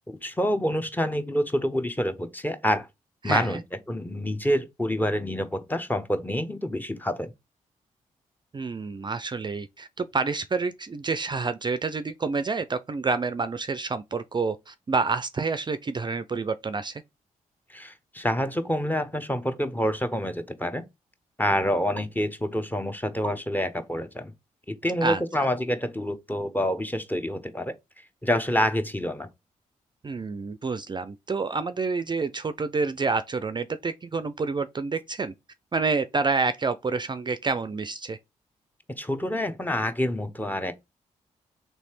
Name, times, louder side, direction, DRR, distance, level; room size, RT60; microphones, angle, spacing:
voice 1, 0.1-2.9 3.2-3.6 3.9-7.3 17.7-20.8 21.4-24.3 24.7-27.7 28.2-29.3 39.0-40.7, equal, 10° left, 0.8 m, -27 dB
voice 2, 3.2-3.6 8.5-17.0 25.0-25.5 30.0-35.3 35.7-38.2, right 4 dB, 35° right, 0.4 m, -28 dB
3.2 x 3.1 x 4.4 m
supercardioid pair, 55°, 14 cm